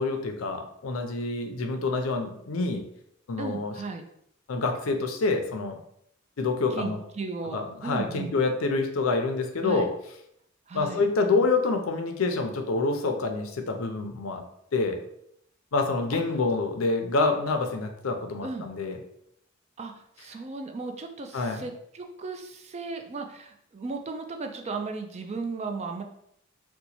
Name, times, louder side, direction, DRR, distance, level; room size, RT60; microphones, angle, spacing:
voice 1, 0.0-2.9 3.3-3.7 4.5-5.8 6.4-7.0 7.5-9.9 10.7-14.4 14.7-15.0 15.7-19.0 21.3-21.6, left 3 dB, 80° left, 5 dB, 0.5 m, -27 dB
voice 2, 3.4-4.0 6.7-8.4 9.6-9.9 10.7-11.0 16.1-16.2 18.4-18.7 19.8-26.0, right 4 dB, 30° right, 4 dB, 0.4 m, -36 dB
2.8 x 2.2 x 4.1 m, 0.73 s
head